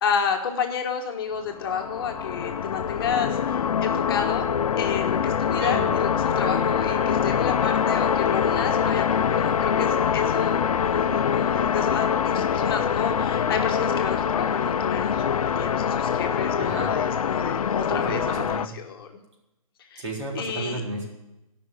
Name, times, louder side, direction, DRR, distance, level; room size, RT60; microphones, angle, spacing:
voice 1, 0.0-4.5 4.8-18.4 18.7-19.1 19.9-20.0 20.3-20.8, left 7 dB, 40° left, 3 dB, 1.3 m, -30 dB
sound 1, 1.5-18.7, left 7 dB, 75° left, 0.5 m, -24 dB
voice 2, 5.6-6.0 16.6-16.9 17.9-18.8 20.0-21.1, right 2 dB, 55° right, -2 dB, 3.8 m, -32 dB
Wind instrument woodwind instrument, 6.1-11.7, left 4 dB, 15° left, 2.5 m, -38 dB
12.5 x 5.8 x 9.1 m, 0.95 s
hypercardioid pair, 160°, 18 cm